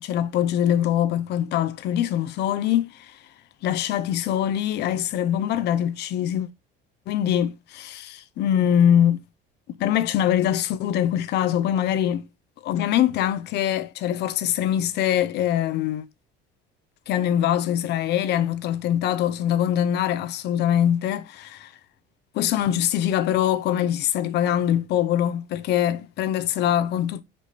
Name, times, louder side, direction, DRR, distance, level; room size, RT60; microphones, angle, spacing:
voice 1, 0.0-3.1 3.6-6.5 7.1-9.2 9.8-12.3 12.6-16.0 17.1-21.7 22.3-27.2, left 10 dB, 55° left, 0.9 m, -23 dB
5.2 x 5.1 x 4.2 m
cardioid pair, 160°, 21 cm